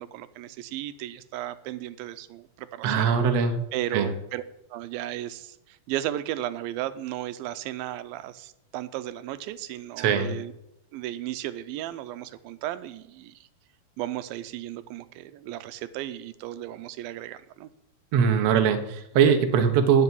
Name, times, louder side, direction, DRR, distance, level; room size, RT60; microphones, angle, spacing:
voice 1, 0.0-3.1 3.7-4.4 4.7-10.5 10.9-13.5 14.0-17.7, right 13 dB, 85° right, 12 dB, 2.4 m, -35 dB
voice 2, 2.8-3.6 3.9-4.1 10.0-10.4 18.1-20.0, right 7 dB, 60° right, 6 dB, 1.9 m, -21 dB
14.0 x 5.4 x 9.6 m, 0.83 s
omnidirectional pair, 4.1 m